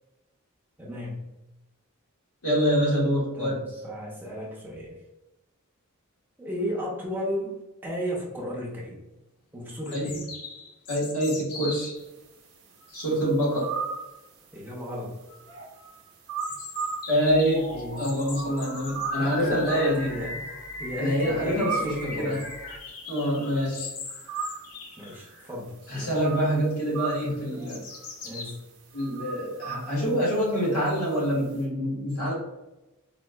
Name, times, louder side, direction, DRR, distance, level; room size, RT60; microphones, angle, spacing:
voice 1, 0.8-1.3 3.3-5.0 6.4-9.0 9.5-10.2 14.5-15.2 17.7-18.0 19.2-20.5 20.8-22.4 25.0-26.2 28.2-28.6, equal, 10° right, -3 dB, 0.6 m, -34 dB
voice 2, 2.4-3.6 9.9-10.2 10.9-11.9 12.9-13.7 17.1-20.2 21.0-22.4 23.1-23.9 25.9-27.8 28.9-32.3, equal, 75° left, -5 dB, 1.4 m, -26 dB
sound 1, 8.8-8.9 9.8-12.0 16.4-19.1 20.8-20.9 21.1-21.2 21.6-21.7 22.3-25.5 26.0-26.5 27.0-28.5, left 4 dB, 90° left, 0.6 m, -41 dB
sound 2, 12.1-17.6 17.9-31.6, right 5 dB, 70° right, 0.7 m, -37 dB
sound 3, 17.3-22.8, left 1 dB, 40° left, 1.0 m, -38 dB
4.4 x 2.3 x 2.3 m, 1.0 s
head